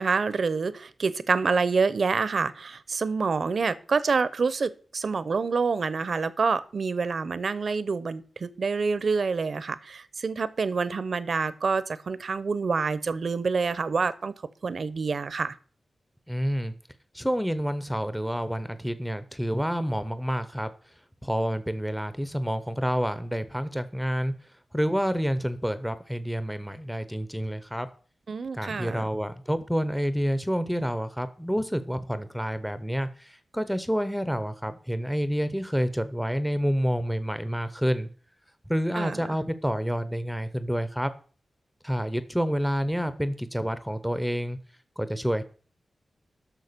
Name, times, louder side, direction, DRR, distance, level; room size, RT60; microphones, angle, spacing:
voice 1, 0.0-14.3 14.6-15.5 28.3-29.0 39.0-39.2, right 4 dB, 60° right, 0.7 m, -27 dB
voice 2, 16.3-16.7 17.1-20.7 21.2-24.3 24.7-27.9 28.5-38.1 38.7-41.1 41.8-44.6 45.0-45.4, equal, ahead, 0.7 m, -28 dB
10.5 x 6.4 x 6.7 m
wide cardioid pair, 115°, 0 cm